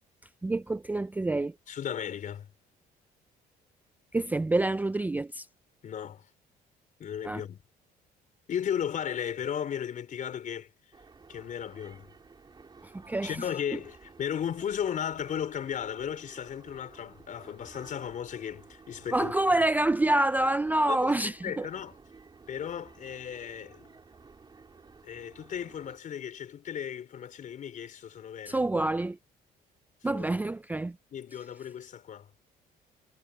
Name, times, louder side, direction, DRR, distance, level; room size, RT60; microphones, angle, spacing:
voice 1, 0.4-1.6 4.1-5.5 7.2-7.4 12.8-13.8 19.1-21.7 28.5-29.2 30.0-31.0, right 2 dB, 10° right, 0.4 m, -27 dB
voice 2, 1.7-2.5 5.8-6.2 7.0-7.6 8.5-10.7 11.3-12.1 13.2-19.3 20.9-21.1 21.4-21.9 22.5-23.9 25.0-28.6 30.1-30.2 31.1-32.3, left 9 dB, 50° left, 4.9 m, -35 dB
sound 1, 10.9-26.0, right 4 dB, 25° right, 4.2 m, -54 dB
cardioid pair, 110°, 17 cm